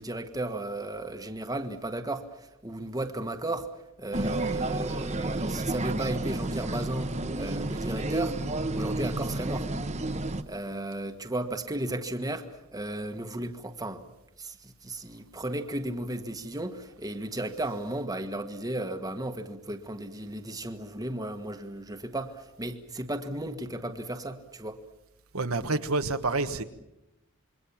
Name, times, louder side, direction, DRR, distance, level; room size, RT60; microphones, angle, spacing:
voice 1, 0.0-3.7 4.0-8.4 8.7-9.7 10.5-14.0 14.4-24.8, right 1 dB, 15° right, 1.5 m, -34 dB
sound 1, 4.1-10.4, right 2 dB, 30° right, 1.1 m, -31 dB
voice 2, 25.3-26.6, right 3 dB, 75° right, 1.4 m, -28 dB
27.0 x 23.0 x 7.2 m
head